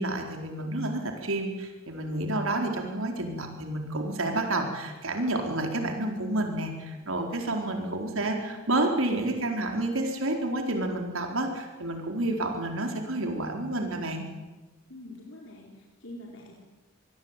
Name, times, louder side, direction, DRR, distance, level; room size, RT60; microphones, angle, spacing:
voice 1, 0.0-14.3, right 1 dB, 80° right, 3 dB, 4.4 m, -30 dB
voice 2, 14.9-16.5, left 1 dB, 60° left, -1 dB, 4.7 m, -45 dB
27.0 x 21.5 x 9.1 m, 1.2 s
head